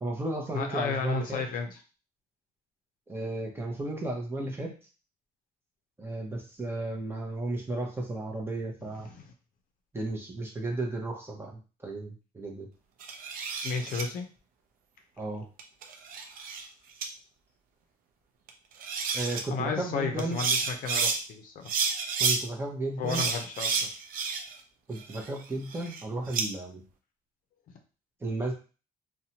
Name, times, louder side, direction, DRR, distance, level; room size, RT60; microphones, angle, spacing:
voice 1, 0.0-1.4 3.1-4.7 6.0-9.1 9.9-12.7 15.2-15.4 19.1-20.4 22.2-23.2 24.9-26.8 28.2-28.5, right 2 dB, 15° right, 0 dB, 0.7 m, -34 dB
voice 2, 0.5-1.8 9.0-9.2 13.6-14.3 19.5-21.7 23.0-23.9 27.7-27.8, left 5 dB, 60° left, 4 dB, 0.5 m, -33 dB
sound 1, 13.0-14.0 15.6-16.7 17.0-17.1 18.5-18.6 18.8-19.4 20.2-21.2 21.7-22.4 23.1-24.6 25.0-26.5, right 5 dB, 60° right, 0.5 m, -30 dB
2.6 x 2.2 x 2.8 m, 0.34 s
cardioid pair, 125°, 16 cm